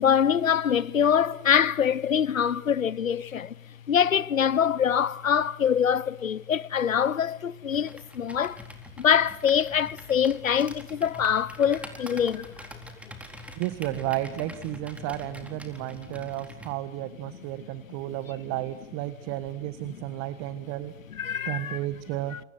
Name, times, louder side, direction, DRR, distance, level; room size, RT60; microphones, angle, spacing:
voice 1, 0.0-8.7 9.0-12.8 19.9-20.0 21.1-21.8 22.3-22.4, left 8 dB, 80° left, 0.9 m, -24 dB
Computer keyboard, 7.7-16.8, equal, 5° right, 4.0 m, -46 dB
voice 2, 13.6-20.9 21.5-22.4, right 16 dB, 40° right, 1.7 m, -33 dB
29.0 x 27.5 x 6.2 m
figure-of-eight pair, 95°, 40 cm